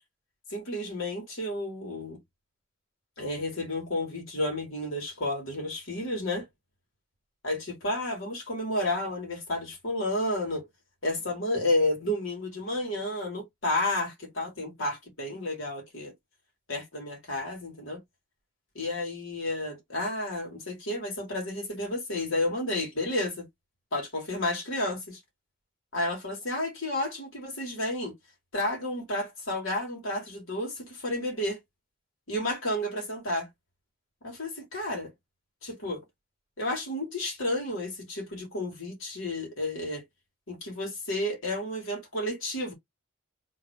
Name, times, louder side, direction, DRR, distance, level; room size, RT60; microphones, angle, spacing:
voice 1, 0.5-2.2 3.2-6.5 7.4-10.7 11.0-16.1 16.7-18.0 18.8-23.5 23.9-25.2 25.9-28.2 28.5-31.6 32.3-33.5 34.2-35.1 35.6-36.0 36.6-40.0 40.5-42.7, left 1 dB, 70° left, 2.8 m, -31 dB
4.1 x 3.7 x 3.2 m
head